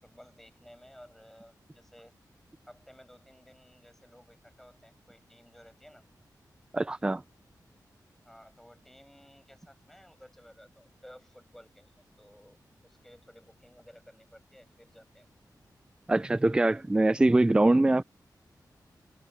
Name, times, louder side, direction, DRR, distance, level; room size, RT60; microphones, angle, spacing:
voice 1, 0.0-2.1 2.7-6.0 8.2-15.3, equal, 5° left, 6.4 m, -55 dB
voice 2, 6.7-7.2 16.1-18.0, right 2 dB, 15° right, 0.3 m, -23 dB
wide cardioid pair, 120°, 7 cm